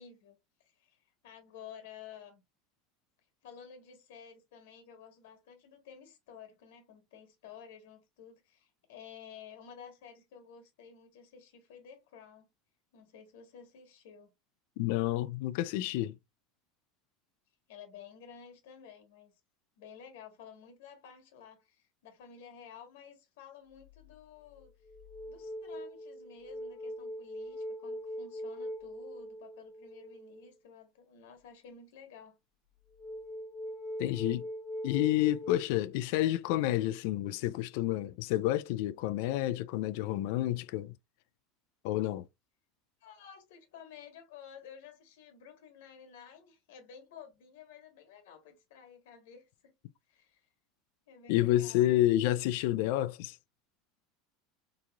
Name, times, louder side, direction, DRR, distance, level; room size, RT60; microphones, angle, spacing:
voice 1, 0.0-2.4 3.4-12.5 12.9-14.3 17.7-19.3 19.8-24.7 25.2-32.4 43.0-49.7 50.1-50.4 51.1-51.9, left 7 dB, 80° left, 1.2 m, -52 dB
voice 2, 14.8-16.2 34.0-34.4 34.8-40.9 41.8-42.2 51.3-53.4, left 14 dB, 65° left, 0.3 m, -29 dB
sound 1, 23.8-24.1 24.6-30.5 33.0-35.6, equal, 15° left, 0.5 m, -41 dB
3.8 x 2.9 x 2.2 m
supercardioid pair, 140°, 0 cm